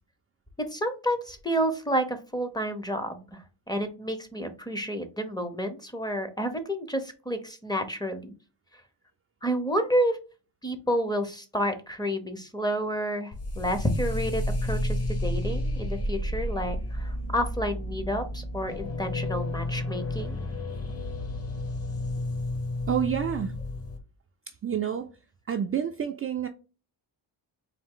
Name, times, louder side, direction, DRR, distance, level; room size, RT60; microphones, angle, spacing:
voice 1, 0.6-8.3 9.4-10.2 10.6-20.4, equal, 10° left, 0.6 m, -30 dB
sound 1, 13.3-24.0, left 1 dB, 35° left, 0.9 m, -31 dB
voice 2, 22.9-23.6 24.5-25.1 25.5-26.5, right 8 dB, 35° right, 0.4 m, -28 dB
4.1 x 2.6 x 3.6 m
cardioid pair, 135°, 44 cm